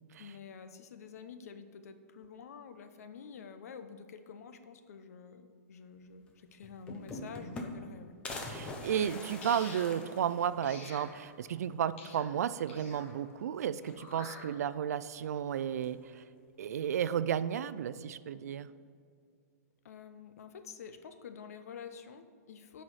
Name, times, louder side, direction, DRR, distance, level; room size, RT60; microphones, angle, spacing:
voice 1, 0.2-8.1 19.8-22.8, left 6 dB, 65° left, 9 dB, 0.8 m, -49 dB
sound 1, 6.3-6.4 6.6-7.9 8.2-10.8 11.3-11.4 11.6-11.7 12.9-13.3 13.7-14.4 15.5-16.1, left 2 dB, 10° left, 0.7 m, -44 dB
voice 2, 8.5-16.2 16.6-18.7, right 9 dB, 75° right, 15 dB, 0.4 m, -33 dB
sound 2, 9.4-9.9 10.6-11.1 12.0-12.2 12.7-13.1 14.0-14.4, left 3 dB, 50° left, 2.2 m, -47 dB
7.8 x 5.6 x 6.4 m, 2.2 s
hypercardioid pair, 170°, 9 cm